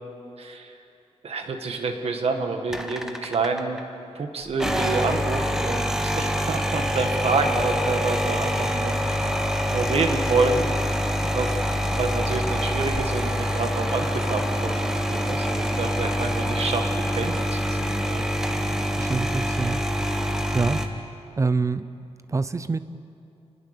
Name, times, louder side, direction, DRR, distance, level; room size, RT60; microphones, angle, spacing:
voice 1, 0.4-0.7 1.2-3.8 4.1-9.3 9.7-10.6 11.1-11.6 11.9-18.3, right 3 dB, 60° right, 5 dB, 1.9 m, -28 dB
sound 1, 2.7-3.8 4.5-20.9, equal, 5° right, 1.3 m, -25 dB
voice 2, 19.0-19.8 20.5-20.8 21.4-21.9 22.3-22.8, right 4 dB, 25° right, 13 dB, 0.7 m, -25 dB
28.5 x 20.0 x 6.8 m, 2.6 s
wide cardioid pair, 170°, 11 cm